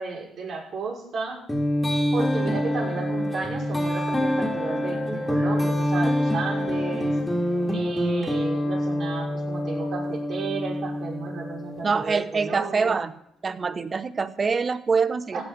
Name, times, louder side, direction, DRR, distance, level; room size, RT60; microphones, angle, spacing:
voice 1, 0.0-1.4 2.1-7.1 7.7-13.0 15.3-15.4, right 4 dB, 55° right, -3 dB, 6.0 m, -33 dB
sound 1, 1.5-12.1, left 1 dB, 15° left, 2.8 m, -26 dB
voice 2, 11.8-13.1 13.4-15.4, right 5 dB, 35° right, 14 dB, 1.0 m, -25 dB
15.5 x 6.0 x 9.9 m, 0.75 s
cardioid pair, 85°, 0 cm